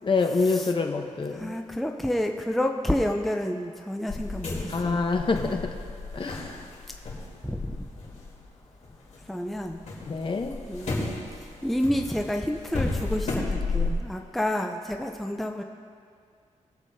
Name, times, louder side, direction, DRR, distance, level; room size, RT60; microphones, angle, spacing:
voice 1, 0.0-1.5 4.7-5.7 6.1-6.6 10.1-10.6, left 4 dB, 40° left, 4 dB, 0.9 m, -26 dB
voice 2, 1.3-5.1 7.4-7.8 9.3-9.8 10.7-15.6, left 1 dB, ahead, 3 dB, 0.5 m, -29 dB
sound 1, 4.1-9.2 9.5-13.9, left 3 dB, 60° left, 3.2 m, -33 dB
21.0 x 8.3 x 2.7 m, 2.2 s
wide cardioid pair, 115°, 13 cm